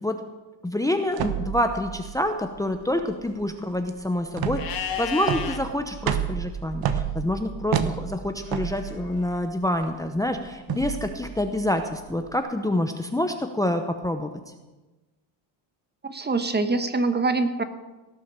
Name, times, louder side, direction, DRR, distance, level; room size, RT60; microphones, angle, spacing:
voice 1, 0.6-14.3, left 1 dB, 5° left, 6 dB, 0.8 m, -27 dB
sound 1, 1.1-12.3, right 8 dB, 50° right, 1.2 m, -31 dB
Livestock farm animals working animals, 4.5-5.6 8.4-9.4, left 9 dB, 50° left, 1.6 m, -33 dB
voice 2, 16.0-17.6, right 3 dB, 20° right, 9 dB, 1.1 m, -24 dB
17.5 x 7.6 x 6.8 m, 1.2 s
cardioid pair, 105°, 45 cm